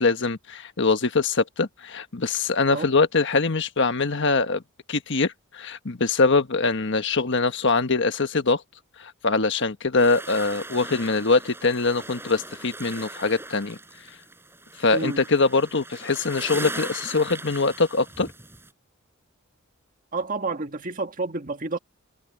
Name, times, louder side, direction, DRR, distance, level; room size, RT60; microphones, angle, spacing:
voice 1, 0.0-4.6 4.9-8.6 9.0-13.8 14.8-18.3, left 3 dB, 60° left, 1.3 m, -23 dB
sound 1, 10.0-18.7, right 2 dB, 10° right, 7.3 m, -39 dB
voice 2, 14.9-15.2 20.1-21.8, right 3 dB, 40° right, 1.7 m, -29 dB
head